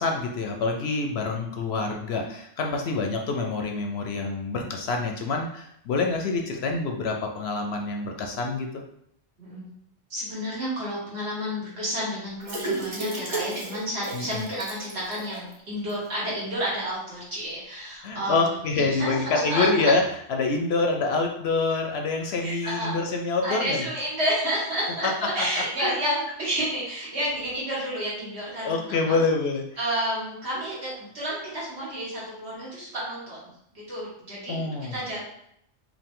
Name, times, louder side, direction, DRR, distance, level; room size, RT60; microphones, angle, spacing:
voice 1, 0.0-8.7 14.1-14.5 18.0-20.0 20.3-23.9 25.8-26.0 28.6-29.6 34.5-35.0, left 3 dB, 65° left, 3 dB, 0.8 m, -26 dB
voice 2, 10.1-19.9 22.4-23.0 23.4-29.2 29.8-35.2, equal, 60° right, -7 dB, 2.1 m, -30 dB
sound 1, 12.4-15.5 15.9-16.0 16.3-16.4, right 2 dB, 35° right, 1.0 m, -33 dB
5.0 x 2.8 x 3.6 m, 0.73 s
omnidirectional pair, 1.3 m